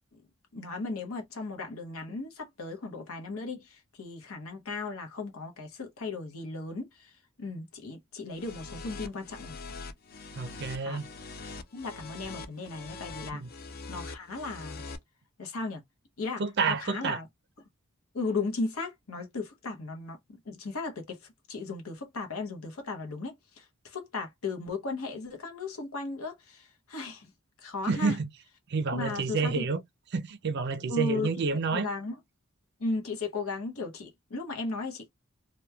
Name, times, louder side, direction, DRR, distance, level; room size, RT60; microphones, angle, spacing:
voice 1, 0.5-7.1 7.4-9.6 10.8-11.0 11.7-13.4 13.9-14.8 15.4-15.8 16.2-16.4 16.7-17.3 18.1-21.2 21.5-27.3 27.6-28.2 28.9-29.6 30.9-31.3 31.7-32.2 32.8-35.1, left 3 dB, 80° left, 0.8 m, -36 dB
sound 1, 8.3-15.0, left 3 dB, 45° left, 0.4 m, -43 dB
voice 2, 10.4-11.1 13.3-13.5 16.4-17.2 27.9-28.3 28.7-29.8 30.1-31.9, right 4 dB, 50° right, 0.4 m, -29 dB
2.9 x 2.2 x 2.2 m
head